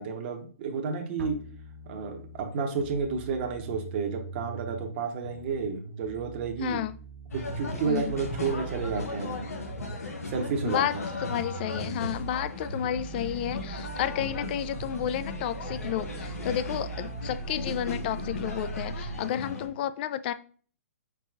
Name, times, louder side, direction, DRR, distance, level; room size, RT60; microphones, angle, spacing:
voice 1, 0.0-1.3 1.9-6.8 7.3-9.5 10.3-10.8 17.1-17.2, right 5 dB, 45° right, 0.8 m, -31 dB
sound 1, 1.2-19.2, right 4 dB, 70° right, 1.4 m, -42 dB
voice 2, 6.6-6.9 7.8-8.1 10.6-11.0 11.2-20.3, left 11 dB, 40° left, 0.3 m, -31 dB
sound 2, 7.3-19.7, left 2 dB, 85° left, 1.0 m, -37 dB
4.7 x 4.0 x 2.4 m
hypercardioid pair, 135°, 8 cm